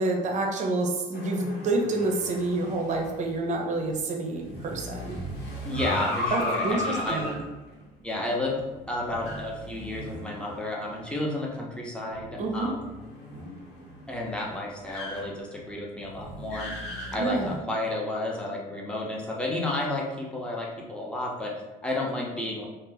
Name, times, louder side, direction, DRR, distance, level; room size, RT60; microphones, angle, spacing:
voice 1, 0.0-5.2 6.3-7.4 12.4-12.7 17.1-17.5, right 2 dB, 45° right, 2 dB, 0.6 m, -28 dB
sound 1, 1.1-11.1 11.4-11.5 12.1-17.6, left 1 dB, 75° left, 0.9 m, -37 dB
voice 2, 5.6-7.4 8.0-12.9 14.1-21.6 21.8-22.6, left 1 dB, 5° left, -3 dB, 0.6 m, -32 dB
2.6 x 2.0 x 3.8 m, 1.1 s
cardioid pair, 110°, 17 cm